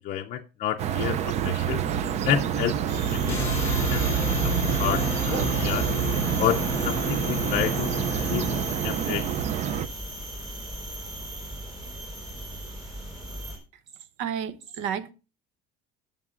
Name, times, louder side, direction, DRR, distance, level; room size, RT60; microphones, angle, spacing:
voice 1, 0.0-2.8 3.1-4.1 4.4-5.9 6.4-7.9 8.2-8.5 8.8-9.4, left 10 dB, 40° left, 0.5 m, -30 dB
sound 1, 0.8-9.9, right 8 dB, 35° right, 0.4 m, -27 dB
sound 2, 2.9-13.6, right 1 dB, 20° right, 3.9 m, -35 dB
sound 3, 3.3-9.1, left 1 dB, 15° left, 1.9 m, -31 dB
voice 2, 14.2-15.1, right 8 dB, 90° right, 0.9 m, -31 dB
14.5 x 7.1 x 2.5 m
cardioid pair, 170°, 19 cm